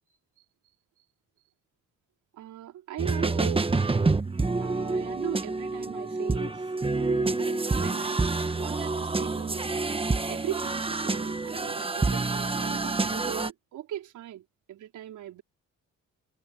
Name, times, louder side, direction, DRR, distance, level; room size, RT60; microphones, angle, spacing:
voice 1, 2.3-3.7 4.6-9.7 10.3-15.4, right 11 dB, 80° right, 4.4 m, -39 dB
sound 1, 3.0-13.5, right 3 dB, 20° right, 1.4 m, -27 dB
cardioid pair, 90°, 30 cm